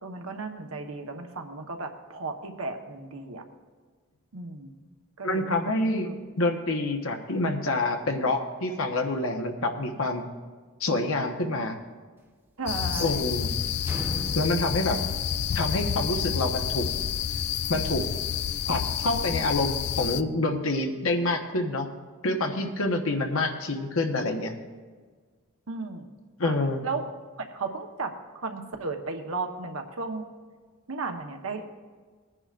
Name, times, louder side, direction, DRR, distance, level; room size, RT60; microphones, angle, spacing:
voice 1, 0.0-3.4 4.3-4.7 5.2-5.5 6.0-6.2 12.6-13.3 25.7-26.1 26.4-26.6 26.8-27.1 27.4-30.3 30.9-31.6, right 3 dB, 75° right, 4 dB, 1.1 m, -34 dB
voice 2, 5.2-6.1 6.3-10.2 10.8-11.7 13.0-13.5 14.3-15.0 15.5-16.9 17.7-18.0 18.7-21.9 22.2-24.5 26.4-26.8, left 2 dB, 70° left, 4 dB, 1.2 m, -27 dB
sound 1, 12.7-20.2, left 8 dB, 50° left, 0.4 m, -29 dB
sound 2, 12.8-15.9, right 1 dB, 10° right, 0.9 m, -40 dB
20.0 x 9.8 x 2.5 m, 1.5 s
head